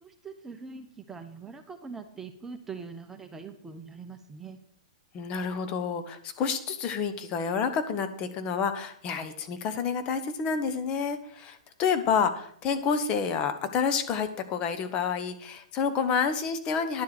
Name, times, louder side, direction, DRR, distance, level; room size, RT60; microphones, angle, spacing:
voice 1, 0.0-4.6, right 5 dB, 10° right, 7 dB, 0.9 m, -42 dB
voice 2, 5.1-17.0, left 6 dB, 30° left, 8 dB, 1.0 m, -29 dB
10.5 x 4.8 x 7.7 m, 0.62 s
hypercardioid pair, 120°, 3 cm